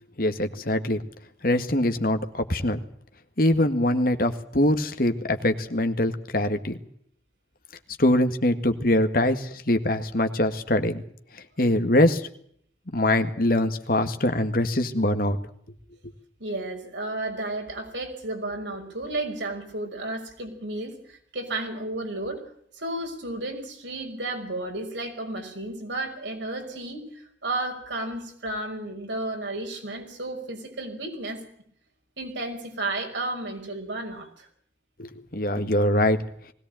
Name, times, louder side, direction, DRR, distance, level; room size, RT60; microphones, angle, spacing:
voice 1, 0.2-1.0 1.4-2.8 3.4-6.8 8.0-11.0 11.6-12.2 12.9-15.4 35.0-36.2, left 1 dB, 50° left, 8 dB, 1.9 m, -23 dB
voice 2, 16.4-22.4 22.7-31.4 32.2-34.5 35.6-35.7, right 2 dB, 90° right, 3 dB, 5.8 m, -33 dB
20.5 x 17.0 x 9.0 m, 0.65 s
head